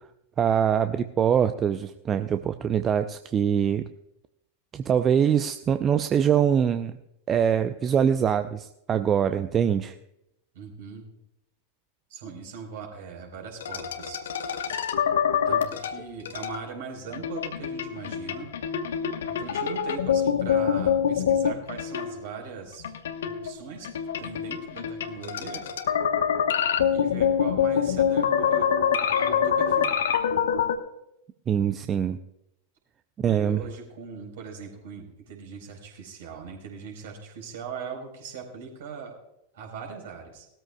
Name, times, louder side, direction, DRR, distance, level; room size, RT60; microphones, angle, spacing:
voice 1, 0.4-3.8 4.7-7.0 7.3-10.0 31.5-32.2 33.2-33.6, right 8 dB, 25° right, 10 dB, 0.6 m, -23 dB
voice 2, 10.5-11.1 12.1-14.2 15.5-18.5 19.3-22.9 23.2-23.9 24.2-25.6 26.9-28.7 29.0-29.9 33.3-39.1 39.5-40.5, right 6 dB, 55° right, 2 dB, 4.2 m, -40 dB
sound 1, 13.6-16.6 17.1-22.4 22.8-30.8, left 8 dB, 60° left, 1.2 m, -25 dB
19.5 x 13.5 x 2.3 m, 0.83 s
figure-of-eight pair, 90°, 0 cm